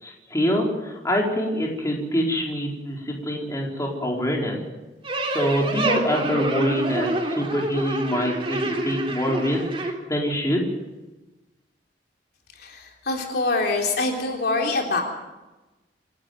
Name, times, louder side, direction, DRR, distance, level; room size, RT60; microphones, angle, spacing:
voice 1, 0.0-4.6 5.3-9.6 10.1-10.7, equal, 20° left, -1 dB, 4.4 m, -25 dB
sound 1, 5.0-9.9, right 1 dB, 30° right, 3.5 m, -27 dB
voice 2, 12.6-15.0, left 3 dB, 60° left, 1 dB, 3.4 m, -25 dB
26.5 x 12.5 x 9.5 m, 1.1 s
head